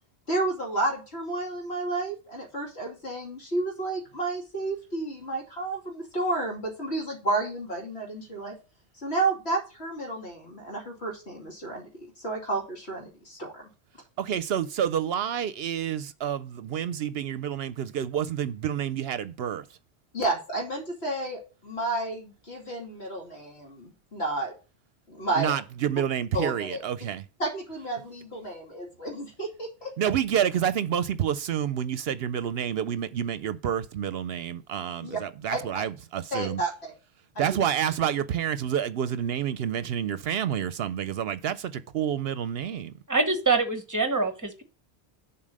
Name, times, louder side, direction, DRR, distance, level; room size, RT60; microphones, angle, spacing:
voice 1, 0.3-8.6 9.0-13.7 20.1-24.5 25.1-25.5 26.3-26.8 27.4-29.9 35.0-35.2 35.5-35.6 36.3-36.9 37.3-37.4, right 2 dB, 75° left, 2.9 m, -31 dB
voice 2, 14.2-19.6 25.4-27.2 30.0-36.6 37.4-42.9, right 9 dB, 70° right, 0.8 m, -29 dB
voice 3, 43.1-44.6, right 3 dB, 20° right, 1.1 m, -25 dB
7.4 x 4.3 x 6.4 m
omnidirectional pair, 1.1 m